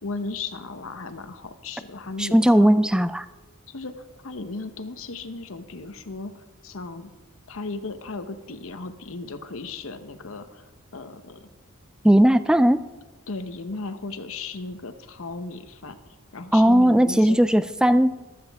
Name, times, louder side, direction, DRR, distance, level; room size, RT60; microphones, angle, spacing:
voice 1, 0.0-2.7 3.7-7.1 7.5-11.5 13.3-17.4, left 3 dB, 65° left, 9 dB, 0.9 m, -36 dB
voice 2, 2.2-3.3 12.0-12.8 16.5-18.2, equal, 5° right, 13 dB, 0.3 m, -17 dB
15.0 x 13.0 x 3.5 m, 1.2 s
head